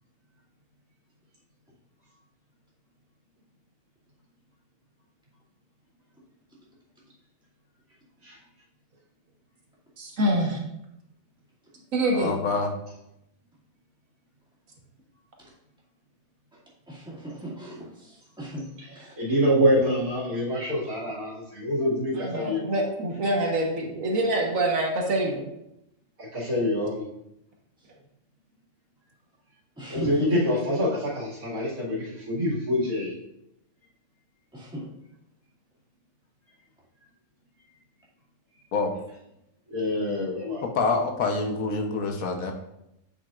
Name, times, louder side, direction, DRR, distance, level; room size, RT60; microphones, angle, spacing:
voice 1, 10.0-10.6 11.9-12.4 22.2-25.4, right 1 dB, 70° right, 0 dB, 1.6 m, -25 dB
voice 2, 12.1-12.7 38.7-38.9 40.6-42.5, left 4 dB, 80° left, 3 dB, 1.4 m, -26 dB
voice 3, 16.9-18.7 19.0-19.1 29.8-30.1 34.5-34.9, right 1 dB, 5° right, -7 dB, 2.3 m, -37 dB
voice 4, 19.2-22.8 26.2-27.0 29.9-33.2 39.7-40.6, equal, 85° right, -5 dB, 2.6 m, -26 dB
8.4 x 6.1 x 2.5 m, 0.82 s
omnidirectional pair, 1.5 m